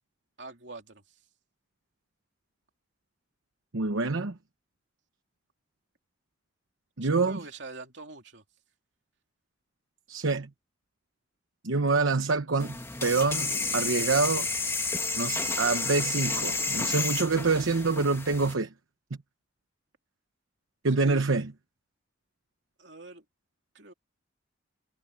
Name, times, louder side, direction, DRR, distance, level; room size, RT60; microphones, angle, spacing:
voice 1, 0.4-1.2 7.0-8.4 20.9-21.2 22.8-23.2 23.7-23.9, right 3 dB, 65° right, 2.7 m, -45 dB
voice 2, 3.7-4.3 7.0-7.4 10.1-10.5 11.6-14.5 15.1-18.7 20.8-21.5, right 3 dB, 90° right, 1.0 m, -26 dB
sound 1, 12.6-18.5, left 3 dB, 15° left, 1.8 m, -31 dB
head